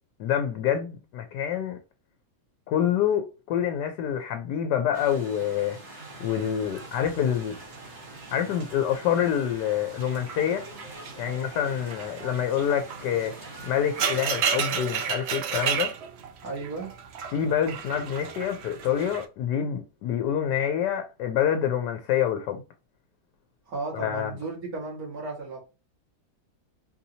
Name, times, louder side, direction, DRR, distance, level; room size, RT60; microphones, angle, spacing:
voice 1, 0.2-1.8 2.7-5.8 6.2-7.5 8.3-10.6 11.2-13.3 13.6-15.9 17.3-22.6 23.9-24.3, left 9 dB, 90° left, 1.2 m, -27 dB
sound 1, 4.9-14.3, right 2 dB, 35° right, 1.2 m, -44 dB
sound 2, 6.4-8.8 9.1-9.5 9.9-19.2, right 7 dB, 80° right, 0.5 m, -33 dB
voice 2, 16.4-16.9 23.7-25.6, right 3 dB, 60° right, 2.1 m, -34 dB
4.5 x 2.7 x 2.7 m
omnidirectional pair, 1.8 m